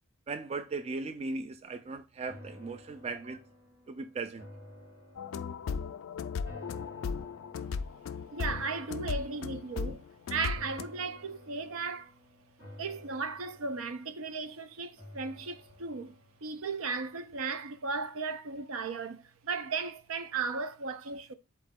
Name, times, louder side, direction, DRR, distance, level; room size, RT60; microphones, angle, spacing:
voice 1, 0.3-3.4 3.9-4.5, right 3 dB, 30° right, 0.3 m, -38 dB
sound 1, 2.3-17.6 18.0-18.1, left 1 dB, 70° right, 1.8 m, -53 dB
sound 2, 5.2-10.8, left 5 dB, 75° left, 0.3 m, -36 dB
voice 2, 8.3-10.0 10.3-12.1 12.8-16.1 16.4-21.3, right 4 dB, 90° right, 0.5 m, -36 dB
4.1 x 3.1 x 3.5 m
head